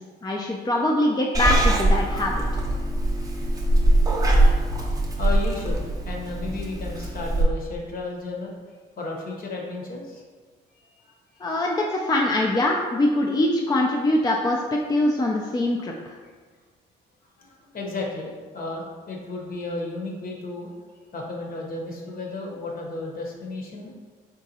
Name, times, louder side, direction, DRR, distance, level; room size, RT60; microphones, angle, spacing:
voice 1, 0.2-2.4 11.4-16.1, left 1 dB, 20° left, 0 dB, 0.4 m, -23 dB
Purr / Meow, 1.3-7.4, right 1 dB, 20° right, 0.7 m, -22 dB
voice 2, 5.2-8.5 9.0-10.2 10.7-11.5 17.4-20.7 21.1-23.9, left 2 dB, 50° left, -1 dB, 1.0 m, -33 dB
4.0 x 3.5 x 2.8 m, 1.5 s
cardioid pair, 85°, 19 cm